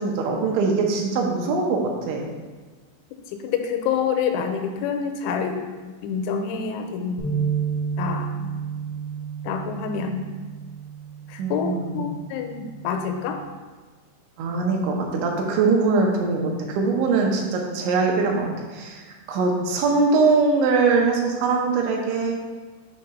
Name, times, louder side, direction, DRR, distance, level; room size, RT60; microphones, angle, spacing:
voice 1, 0.0-2.3 11.4-12.0 14.4-22.4, right 4 dB, 80° right, 0 dB, 3.1 m, -22 dB
voice 2, 3.3-5.7 6.0-7.3 8.0-8.5 9.4-10.3 11.3-13.4, left 6 dB, 90° left, 5 dB, 3.1 m, -27 dB
sound 1, 7.2-13.4, right 7 dB, 65° right, 1.2 m, -31 dB
7.7 x 2.8 x 5.4 m, 1.4 s
omnidirectional pair, 5.4 m